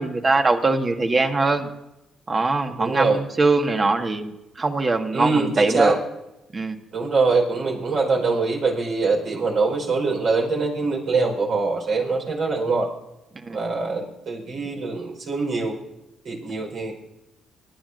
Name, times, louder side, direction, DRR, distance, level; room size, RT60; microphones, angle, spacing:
voice 1, 0.0-1.7 2.3-6.0 6.5-6.8 13.4-13.6, right 3 dB, 40° right, 4 dB, 1.7 m, -22 dB
voice 2, 2.8-3.2 5.1-6.0 6.9-12.9 13.5-15.7 16.2-17.0, right 3 dB, 65° right, 0 dB, 4.6 m, -23 dB
24.0 x 12.0 x 2.7 m, 0.93 s
hypercardioid pair, 50°, 0 cm